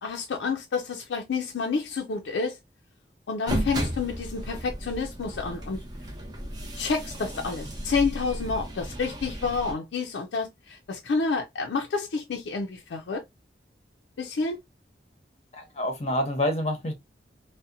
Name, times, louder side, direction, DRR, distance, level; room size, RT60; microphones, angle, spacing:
voice 1, 0.0-2.6 3.3-5.8 6.8-13.2 14.2-14.6, left 4 dB, 90° left, 0.4 m, -29 dB
sound 1, 3.5-9.7, right 1 dB, 25° right, 0.6 m, -34 dB
voice 2, 15.5-16.9, left 1 dB, 35° left, 0.7 m, -27 dB
2.7 x 2.1 x 2.4 m
head